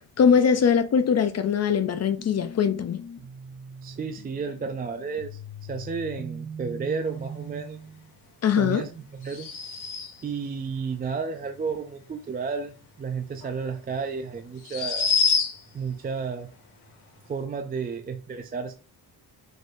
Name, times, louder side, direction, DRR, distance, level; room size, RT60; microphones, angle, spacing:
voice 1, 0.2-3.0 8.4-8.8, left 7 dB, 45° left, 0.5 m, -21 dB
sound 1, 2.2-8.1, right 1 dB, 15° left, 1.2 m, -41 dB
voice 2, 3.8-5.4 5.7-7.8 8.6-9.5 10.2-15.1 15.7-16.5 17.3-18.7, right 5 dB, 25° right, 0.4 m, -32 dB
sound 2, 9.2-10.3 13.4-13.5 14.6-15.8, left 5 dB, 85° left, 1.9 m, -26 dB
5.1 x 4.0 x 2.6 m
wide cardioid pair, 140°, 38 cm